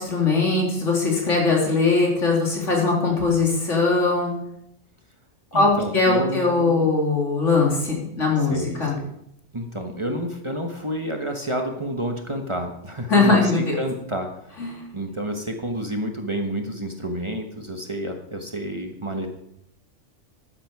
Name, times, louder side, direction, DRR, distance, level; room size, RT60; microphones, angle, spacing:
voice 1, 0.0-4.3 5.5-9.0 13.1-13.7 14.6-14.8, left 3 dB, 75° left, -1 dB, 3.2 m, -20 dB
voice 2, 5.5-6.9 8.4-9.1 9.5-19.3, equal, 25° right, 4 dB, 1.2 m, -29 dB
12.5 x 9.6 x 4.8 m, 0.76 s
omnidirectional pair, 1.3 m